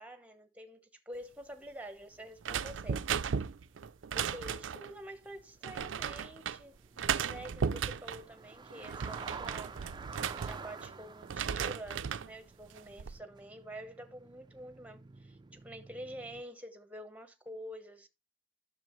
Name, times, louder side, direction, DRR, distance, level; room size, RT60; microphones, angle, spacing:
voice 1, 0.0-3.0 4.1-6.8 7.2-9.7 10.4-18.1, equal, 10° right, 1.0 m, -47 dB
sound 1, 2.1-3.1 3.4-16.4, right 4 dB, 25° right, 0.4 m, -50 dB
sound 2, 2.4-4.9 5.6-6.6 7.0-8.2 8.7-10.9 11.2-12.3 12.8-13.2, right 7 dB, 85° right, 0.5 m, -35 dB
10.5 x 6.6 x 3.1 m
head